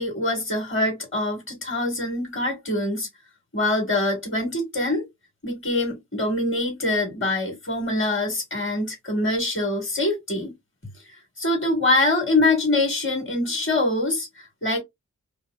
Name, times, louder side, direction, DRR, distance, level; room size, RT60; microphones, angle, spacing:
voice 1, 0.0-3.1 3.5-5.0 5.4-10.5 11.1-14.8, left 2 dB, 40° left, 1.4 m, -24 dB
4.4 x 2.9 x 2.3 m
wide cardioid pair, 70°, 31 cm